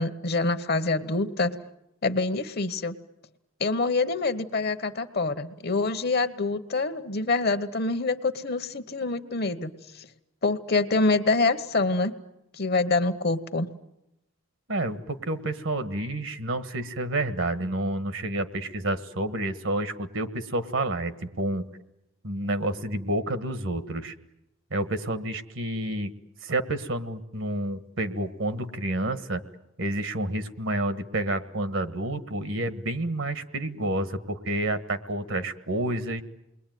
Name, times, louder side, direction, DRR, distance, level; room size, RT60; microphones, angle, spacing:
voice 1, 0.0-1.6 2.0-2.9 3.6-10.1 10.4-12.1 12.6-13.7, left 3 dB, 50° left, 11 dB, 1.1 m, -26 dB
voice 2, 14.7-21.7 22.2-24.1 24.7-26.1 26.4-29.4 29.8-36.2, right 1 dB, 70° right, 11 dB, 1.4 m, -29 dB
28.5 x 21.5 x 9.3 m, 0.90 s
head